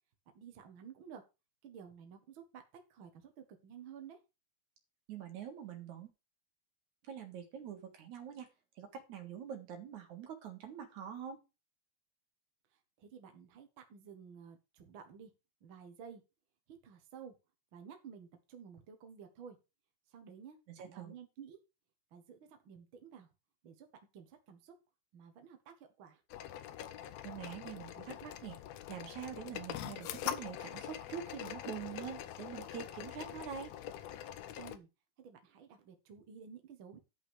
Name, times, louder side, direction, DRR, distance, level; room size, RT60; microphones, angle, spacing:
voice 1, 0.3-1.2 1.6-4.2 13.0-15.3 15.6-16.2 16.7-17.3 17.7-19.6 20.1-21.6 22.1-23.3 23.6-23.9 24.1-24.7 25.1-26.2 34.6-34.9 35.2-37.0, right 7 dB, 50° right, 5 dB, 1.9 m, -53 dB
voice 2, 5.1-6.1 7.0-8.5 8.8-11.4 20.8-21.1 27.2-28.6 28.9-33.7, right 8 dB, 80° right, 5 dB, 3.0 m, -45 dB
sound 1, 26.3-34.8, left 11 dB, 75° left, 1.9 m, -44 dB
11.0 x 5.5 x 4.8 m, 0.27 s
omnidirectional pair, 3.3 m